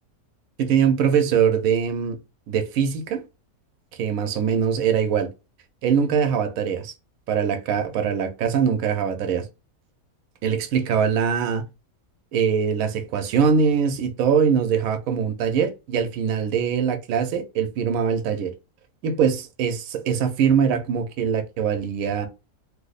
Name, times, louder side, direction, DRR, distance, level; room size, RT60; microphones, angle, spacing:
voice 1, 0.6-2.2 2.5-3.2 4.0-5.3 5.8-6.9 7.3-9.4 10.4-11.6 12.3-18.5 19.0-22.3, right 7 dB, 75° right, 1.0 m, -22 dB
2.9 x 2.0 x 3.9 m
omnidirectional pair, 1.5 m